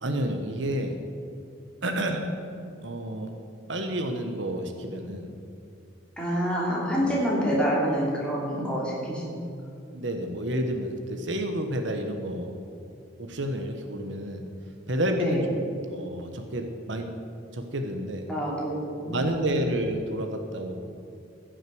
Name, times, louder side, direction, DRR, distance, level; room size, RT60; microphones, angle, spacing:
voice 1, 0.0-1.0 1.8-2.2 2.8-3.3 3.7-5.3 6.9-7.1 9.9-12.6 13.2-14.4 14.9-15.6 15.9-17.1 17.5-18.2 19.0-20.7, right 1 dB, 70° right, 5 dB, 1.2 m, -30 dB
voice 2, 6.2-9.7 15.1-15.4 18.3-19.7, equal, 5° left, -5 dB, 3.1 m, -28 dB
15.0 x 6.5 x 7.9 m, 2.5 s
head